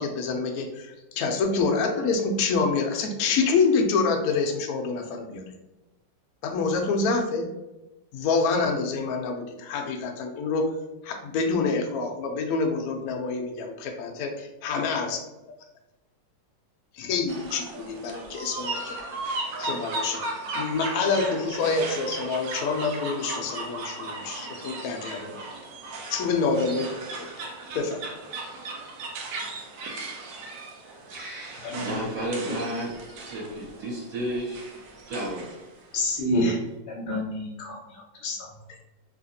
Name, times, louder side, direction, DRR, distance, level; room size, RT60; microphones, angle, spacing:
voice 1, 0.0-5.4 6.4-7.5 8.1-10.7 11.0-15.2 16.9-19.0 19.6-20.2 20.5-25.5 26.1-26.9 27.2-27.3 27.7-28.0, left 4 dB, 80° left, 3 dB, 0.8 m, -27 dB
sound 1, 17.3-35.7, right 2 dB, 70° right, 0.9 m, -36 dB
voice 2, 31.1-34.6 35.1-35.4, right 1 dB, 55° right, -4 dB, 1.4 m, -32 dB
voice 3, 31.6-31.9 35.9-36.6 36.9-37.8 38.2-38.5, left 1 dB, 45° left, -3 dB, 0.7 m, -27 dB
3.2 x 2.8 x 2.7 m, 0.99 s
omnidirectional pair, 2.1 m